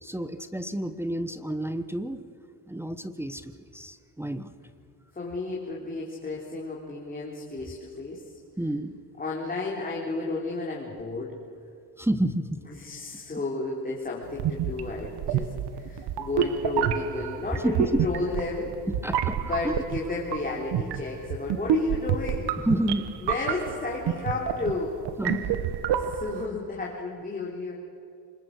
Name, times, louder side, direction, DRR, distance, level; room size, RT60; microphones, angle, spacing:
voice 1, 0.0-2.2 2.7-4.5 8.6-9.0 12.0-12.6 17.6-18.1 19.0-19.7 22.7-23.1 25.2-25.6, right 1 dB, 5° right, 9 dB, 0.9 m, -29 dB
voice 2, 5.1-8.3 9.2-11.3 12.7-18.7 19.4-22.5 23.2-25.0 25.9-27.7, left 3 dB, 20° left, -3 dB, 3.4 m, -32 dB
sound 1, 14.3-26.5, right 9 dB, 75° right, 1.3 m, -29 dB
25.5 x 21.5 x 6.5 m, 2.5 s
cardioid pair, 105°, 41 cm